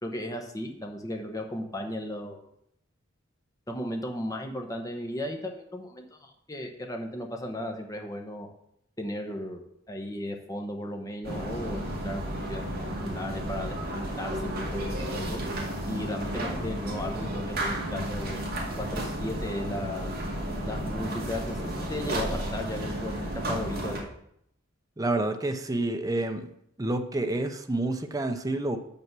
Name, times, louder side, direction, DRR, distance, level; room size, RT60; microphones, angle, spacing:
voice 1, 0.0-2.5 3.7-8.5 9.0-15.4 15.9-18.5 18.8-20.1 20.6-23.2 23.5-24.1, left 1 dB, 15° left, 3 dB, 1.1 m, -36 dB
sound 1, 11.2-24.0, right 1 dB, 50° right, 2.0 m, -32 dB
voice 2, 25.0-26.5 26.8-28.8, right 2 dB, 15° right, 6 dB, 0.6 m, -28 dB
7.2 x 5.6 x 6.1 m, 0.74 s
head